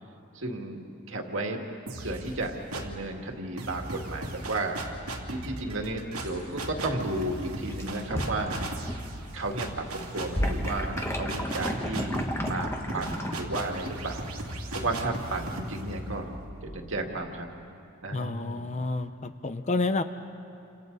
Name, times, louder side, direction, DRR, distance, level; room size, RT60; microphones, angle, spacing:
voice 1, 0.3-1.7 2.0-4.8 5.3-8.6 9.3-14.2 14.7-16.3 16.6-17.5 18.0-18.7, right 2 dB, 60° right, 2 dB, 2.2 m, -33 dB
sound 1, 1.9-3.1 3.6-17.3, right 1 dB, 90° right, 2.6 m, -38 dB
sound 2, 7.5-9.1 9.4-13.4, equal, 10° left, 1.2 m, -32 dB
voice 2, 18.1-20.0, left 3 dB, 30° left, 10 dB, 0.6 m, -29 dB
29.5 x 27.0 x 4.1 m, 2.7 s
head